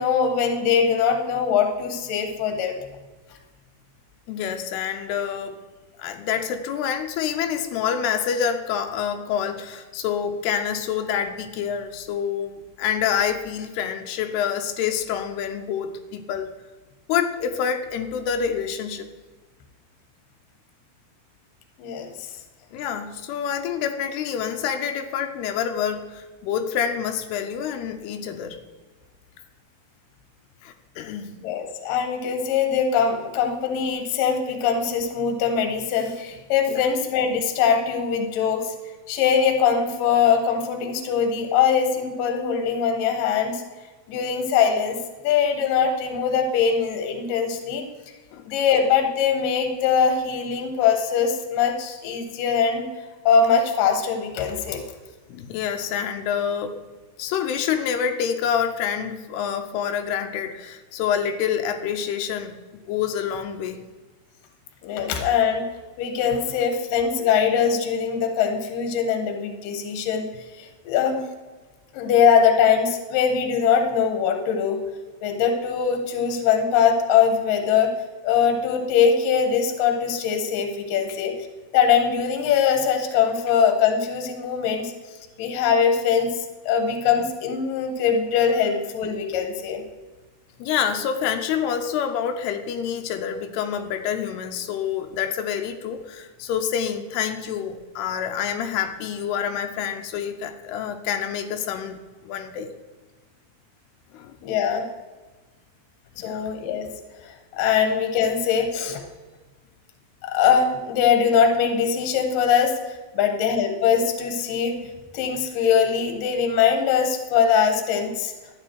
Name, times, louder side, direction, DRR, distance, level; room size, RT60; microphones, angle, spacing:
voice 1, 0.0-2.7 21.8-22.1 31.4-38.7 39.1-43.6 44.1-45.0 45.2-47.8 48.5-52.8 53.2-54.8 64.8-65.7 66.0-70.3 70.6-71.2 71.9-74.8 75.2-77.9 78.2-81.3 81.7-84.9 85.4-86.3 86.7-89.8 104.4-104.9 106.2-106.9 107.2-109.0 110.2-114.8 115.1-118.3, left 7 dB, 65° left, 5 dB, 2.7 m, -22 dB
voice 2, 4.3-5.6 6.0-16.5 17.1-19.1 22.7-28.6 30.6-31.4 36.7-36.9 48.3-48.4 55.3-56.8 57.2-62.6 62.9-63.8 81.1-81.2 90.6-102.0 102.2-102.7 104.1-104.3 106.2-106.4, left 8 dB, 90° left, 5 dB, 2.8 m, -27 dB
12.5 x 9.3 x 4.6 m, 1.3 s
omnidirectional pair, 4.6 m